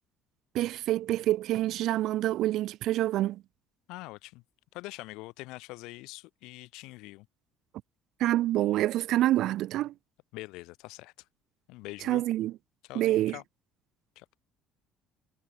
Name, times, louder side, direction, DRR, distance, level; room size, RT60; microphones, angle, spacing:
voice 1, 0.5-3.4 8.2-9.9 12.0-12.5 12.9-13.4, right 14 dB, 65° right, 0.6 m, -27 dB
voice 2, 3.9-4.4 4.7-7.3 10.3-11.1 11.7-12.2 12.8-13.4 14.2-14.3, left 21 dB, 80° left, 3.6 m, -44 dB
cardioid pair, 120°, 0 cm